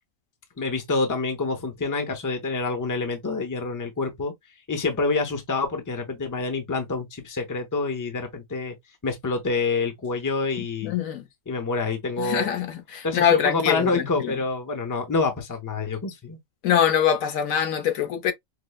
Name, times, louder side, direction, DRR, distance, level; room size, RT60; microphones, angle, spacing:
voice 1, 0.6-4.3 4.7-8.8 9.0-11.0 11.5-12.6 13.0-16.4, left 3 dB, 20° left, 0.6 m, -27 dB
voice 2, 10.8-11.3 12.2-14.3 16.6-18.3, left 9 dB, 85° left, 1.2 m, -23 dB
5.2 x 2.0 x 2.2 m
omnidirectional pair, 1.4 m